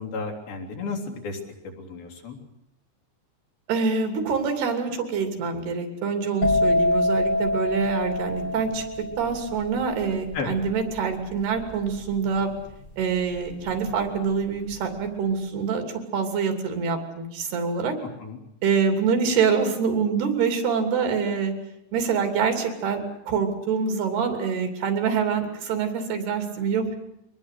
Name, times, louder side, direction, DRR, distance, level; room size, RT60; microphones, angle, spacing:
voice 1, 0.0-2.4 10.3-10.6 18.2-18.4, left 4 dB, 70° left, 2 dB, 5.0 m, -33 dB
voice 2, 3.7-8.8 9.2-12.5 13.0-15.8 16.1-18.0 18.6-21.5 21.9-27.0, right 5 dB, 85° right, 6 dB, 5.1 m, -25 dB
sound 1, 6.4-14.0 14.3-14.7, left 1 dB, 15° left, 3.1 m, -26 dB
24.0 x 19.5 x 8.3 m, 0.82 s
omnidirectional pair, 4.5 m